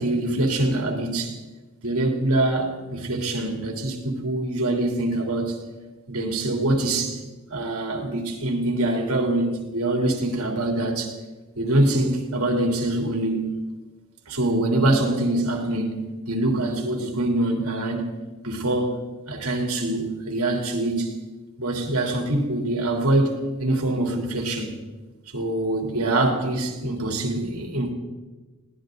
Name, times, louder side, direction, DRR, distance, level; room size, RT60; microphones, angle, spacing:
voice 1, 0.0-1.4 1.8-5.6 6.1-7.2 7.5-11.1 11.6-13.5 14.3-18.1 18.4-19.0 19.3-21.1 21.6-24.7 25.3-27.9, right 1 dB, 70° right, 3.2 m, -24 dB
21.0 x 17.5 x 3.9 m
head